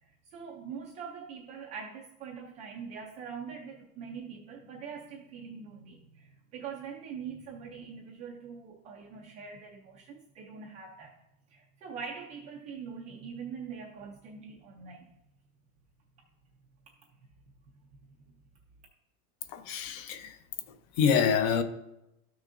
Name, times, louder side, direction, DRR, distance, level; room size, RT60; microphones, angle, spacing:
voice 1, 0.0-11.1 11.5-15.1 16.9-17.0, right 6 dB, 15° right, 0.4 m, -43 dB
voice 2, 19.5-20.3 21.0-21.6, left 7 dB, 45° left, 0.7 m, -26 dB
13.0 x 6.2 x 2.5 m
supercardioid pair, 155°, 44 cm